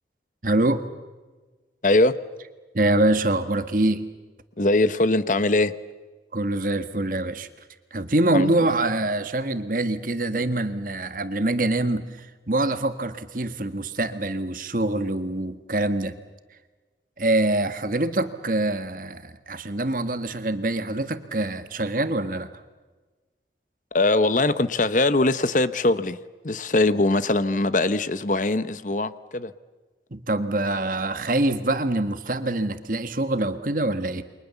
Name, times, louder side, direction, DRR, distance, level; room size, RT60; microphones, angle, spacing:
voice 1, 0.4-0.8 2.7-4.0 6.3-7.5 7.9-16.1 17.2-22.5 30.1-34.2, right 2 dB, 50° right, 9 dB, 1.6 m, -25 dB
voice 2, 1.8-2.1 4.6-5.7 8.3-8.6 23.9-26.2 26.4-29.5, left 2 dB, 45° left, 13 dB, 0.9 m, -21 dB
29.0 x 24.0 x 7.1 m, 1.3 s
head